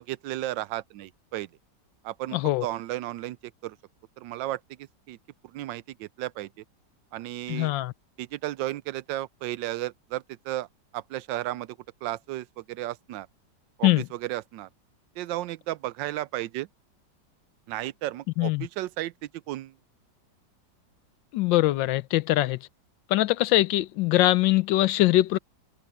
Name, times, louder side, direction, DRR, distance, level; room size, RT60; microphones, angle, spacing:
voice 1, 0.0-1.5 2.0-3.8 4.2-5.2 5.4-6.5 7.1-7.7 8.2-10.7 10.9-13.3 13.8-14.7 15.2-16.7 17.7-19.7, right 15 dB, 85° right, 1.3 m, -34 dB
voice 2, 2.3-2.6 7.5-7.9 13.8-14.0 18.4-18.7 21.3-22.6 23.1-25.4, left 16 dB, 85° left, 1.4 m, -22 dB
open air
omnidirectional pair, 2.0 m